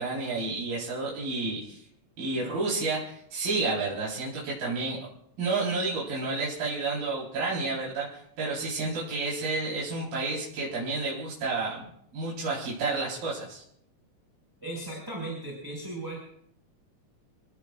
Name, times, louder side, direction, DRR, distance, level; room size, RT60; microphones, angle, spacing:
voice 1, 0.0-1.8 2.2-5.0 5.4-13.6, right 3 dB, 80° right, -6 dB, 6.0 m, -30 dB
voice 2, 14.6-16.2, right 2 dB, 5° right, -3 dB, 5.4 m, -36 dB
29.5 x 18.5 x 2.5 m, 0.71 s
omnidirectional pair, 3.9 m